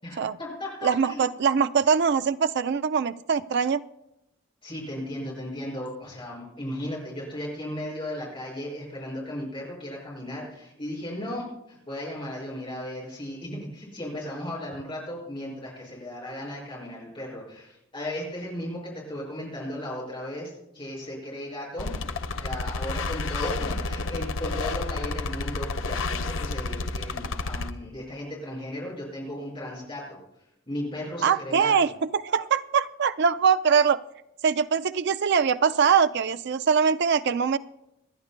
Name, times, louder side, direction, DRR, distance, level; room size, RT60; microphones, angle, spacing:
voice 1, 0.0-1.3 4.6-21.9 22.4-30.2 30.7-31.9, left 1 dB, 25° left, -4 dB, 6.2 m, -36 dB
voice 2, 0.8-3.8 31.2-34.0 34.4-37.6, right 6 dB, 60° right, 13 dB, 0.4 m, -23 dB
sound 1, 21.8-27.7, left 3 dB, 75° left, 0.7 m, -30 dB
27.0 x 11.0 x 2.2 m, 0.86 s
head